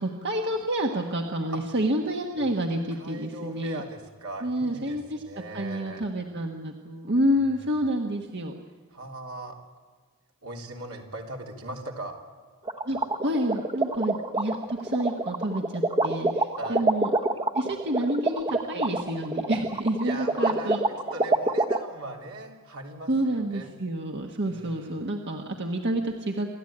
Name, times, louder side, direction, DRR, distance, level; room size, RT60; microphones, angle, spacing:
voice 1, 0.0-3.8 4.4-5.2 5.5-8.5 12.9-17.1 17.5-20.8 23.1-26.5, right 1 dB, 55° right, 2 dB, 1.5 m, -29 dB
voice 2, 2.9-6.1 7.2-7.8 8.9-9.6 10.4-12.2 16.6-16.9 20.0-23.7 24.4-25.0, right 1 dB, 75° right, 0 dB, 3.4 m, -39 dB
sound 1, 12.7-21.8, right 2 dB, 25° right, 1.0 m, -25 dB
28.0 x 13.5 x 8.8 m, 1.5 s
head